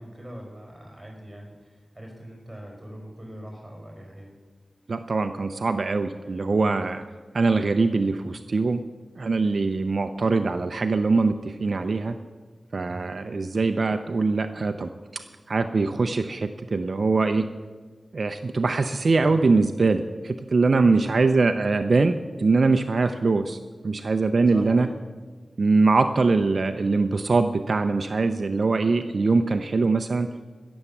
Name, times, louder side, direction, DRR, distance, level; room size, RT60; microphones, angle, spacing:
voice 1, 0.0-4.3 12.8-13.1 19.2-19.5 24.5-25.1, equal, 10° right, -1 dB, 4.9 m, -41 dB
voice 2, 4.9-7.0 7.3-8.8 9.2-12.1 12.7-14.9 15.5-17.5 18.1-23.6 23.8-24.9 25.6-30.3, right 3 dB, 60° right, 8 dB, 0.5 m, -22 dB
16.5 x 7.1 x 7.2 m, 1.4 s
wide cardioid pair, 90°, 0 cm